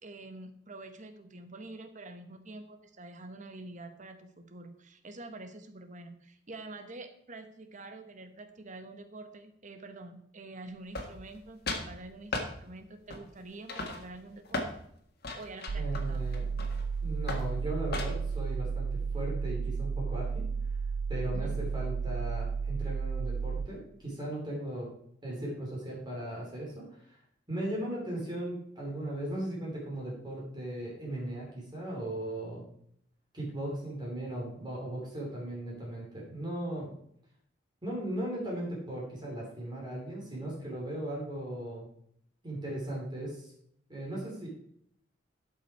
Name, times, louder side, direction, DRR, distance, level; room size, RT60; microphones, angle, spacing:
voice 1, 0.0-14.6 15.3-16.2 21.3-21.6, right 2 dB, 45° right, 8 dB, 1.1 m, -47 dB
sound 1, 10.9-11.4 11.7-11.9 12.3-12.5 13.1-13.4 13.7-14.7 15.2-16.8 17.3-17.5 17.9-18.3, left 2 dB, 60° left, 1.7 m, -36 dB
sound 2, 15.7-23.7, right 5 dB, 80° right, 0.4 m, -33 dB
voice 2, 15.8-16.5 17.0-20.5 21.1-24.9 25.2-27.2 27.5-32.6 33.3-36.9 37.8-41.8 42.4-43.5 43.9-44.5, right 1 dB, 25° right, -3 dB, 2.9 m, -37 dB
12.0 x 5.8 x 4.6 m, 0.68 s
head